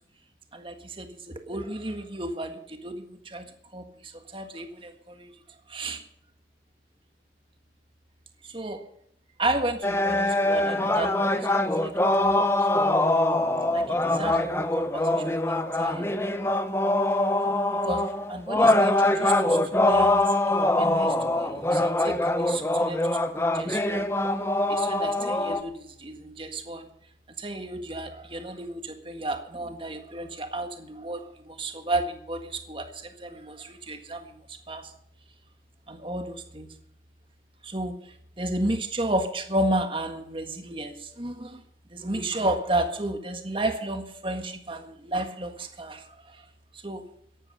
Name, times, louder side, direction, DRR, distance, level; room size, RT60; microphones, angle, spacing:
voice 1, 0.5-3.5 3.7-5.3 5.7-6.0 8.4-8.8 9.4-12.8 13.7-16.1 17.7-24.1 24.7-26.9 27.4-34.9 35.9-36.7 37.6-41.6 41.9-46.4 46.7-47.0, right 1 dB, 30° right, 7 dB, 1.6 m, -33 dB
sound 1, 9.8-25.6, left 1 dB, 15° left, 0.9 m, -24 dB
13.5 x 12.0 x 5.7 m, 0.70 s
head